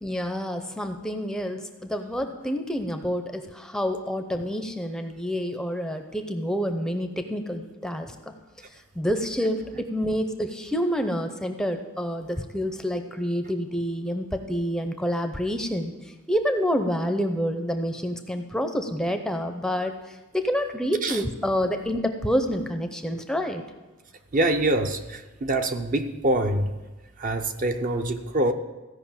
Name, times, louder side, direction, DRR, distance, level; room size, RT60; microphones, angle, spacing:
voice 1, 0.0-8.1 9.0-15.9 16.3-23.6, equal, 5° left, 6 dB, 0.6 m, -28 dB
voice 2, 24.3-26.7 27.2-28.5, right 1 dB, 40° right, 6 dB, 0.7 m, -25 dB
15.0 x 5.4 x 7.2 m, 1.2 s
head